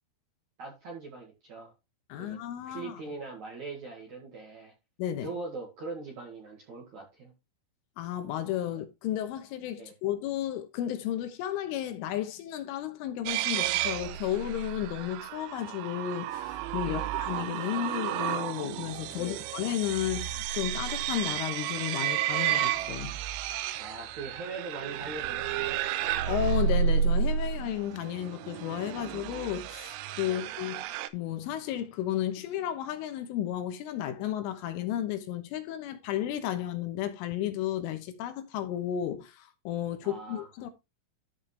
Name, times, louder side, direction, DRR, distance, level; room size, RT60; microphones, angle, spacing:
voice 1, 0.6-1.7 2.2-2.4 2.7-4.7 5.2-7.3 9.8-9.9 16.8-17.1 19.2-19.5 23.8-25.8 30.2-30.6 40.0-40.5, right 3 dB, 55° right, 2.1 m, -41 dB
voice 2, 2.1-3.0 5.0-5.3 8.0-23.2 26.3-30.8 31.1-40.7, left 11 dB, 80° left, 3.4 m, -33 dB
sound 1, 13.3-31.1, right 10 dB, 80° right, 2.9 m, -32 dB
13.5 x 5.2 x 3.3 m
omnidirectional pair, 5.9 m